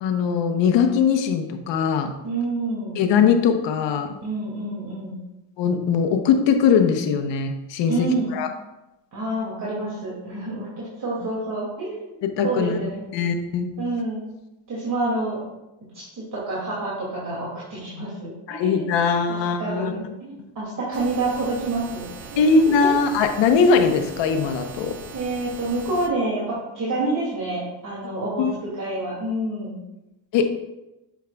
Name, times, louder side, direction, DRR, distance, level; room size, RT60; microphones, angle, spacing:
voice 1, 0.0-2.1 3.0-4.1 5.6-8.1 8.3-8.5 12.2-12.8 13.1-13.7 18.5-19.9 22.4-25.0 28.4-28.5 30.3-30.5, left 6 dB, 80° left, 6 dB, 1.0 m, -20 dB
voice 2, 2.2-3.1 4.2-5.2 7.9-8.4 9.1-13.0 13.8-14.2 14.7-15.4 15.9-18.9 19.3-22.0 22.3-22.9 25.1-29.8, right 2 dB, 45° right, -6 dB, 2.5 m, -28 dB
sound 1, 20.9-26.1, right 5 dB, 75° right, 1.1 m, -40 dB
9.1 x 7.1 x 2.3 m, 0.96 s
cardioid pair, 105°, 43 cm